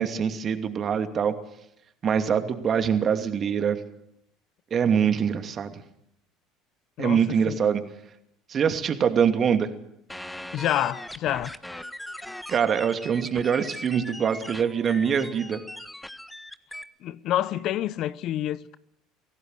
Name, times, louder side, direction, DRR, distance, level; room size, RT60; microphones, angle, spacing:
voice 1, 0.0-1.3 2.0-3.8 4.7-5.7 7.0-7.8 8.5-9.7 12.5-15.6, right 7 dB, 40° right, 2.6 m, -24 dB
voice 2, 7.0-7.6 10.5-11.9 17.0-18.8, left 12 dB, 55° left, 1.0 m, -28 dB
sound 1, 10.1-16.8, left 1 dB, 5° left, 1.5 m, -40 dB
25.0 x 17.5 x 6.6 m
hypercardioid pair, 65°, 0 cm